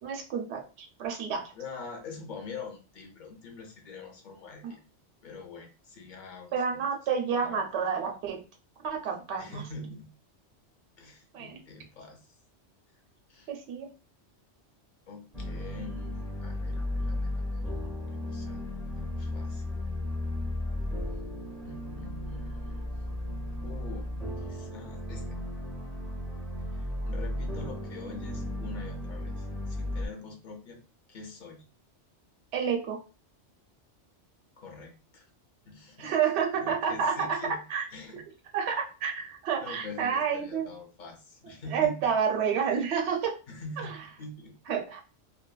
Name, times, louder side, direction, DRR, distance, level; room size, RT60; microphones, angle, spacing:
voice 1, 0.0-1.5 4.6-4.7 6.5-8.4 8.8-9.6 11.3-11.6 13.5-13.9 32.5-33.0 36.0-37.8 38.1-38.2 38.5-40.7 41.7-43.3 43.8-43.9 44.7-45.0, right 7 dB, 70° right, 2 dB, 0.9 m, -29 dB
voice 2, 1.5-4.8 5.2-6.8 7.3-7.6 9.4-10.1 11.0-12.3 13.3-13.5 15.1-18.6 18.9-19.8 21.6-22.9 23.6-25.4 26.7-30.8 31.1-31.6 34.6-35.3 35.7-36.2 36.5-37.6 37.9-38.2 39.5-42.1 43.5-44.6, left 3 dB, 50° left, 4 dB, 0.7 m, -45 dB
sound 1, 15.3-30.1, left 1 dB, ahead, 0.5 m, -35 dB
2.7 x 2.3 x 2.2 m, 0.33 s
omnidirectional pair, 1.2 m